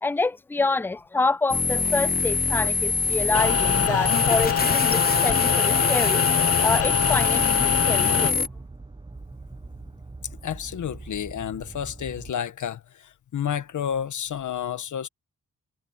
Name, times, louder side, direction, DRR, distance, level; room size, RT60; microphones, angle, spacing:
voice 1, 0.0-8.5, left 3 dB, 5° left, 0.4 m, -27 dB
sound 1, 1.5-8.5, left 4 dB, 30° left, 0.9 m, -24 dB
sound 2, 2.7-12.3, right 3 dB, 15° right, 1.0 m, -42 dB
sound 3, 3.3-8.3, left 8 dB, 50° left, 1.1 m, -24 dB
voice 2, 10.4-15.1, left 9 dB, 75° left, 1.5 m, -30 dB
cardioid pair, 60°, 30 cm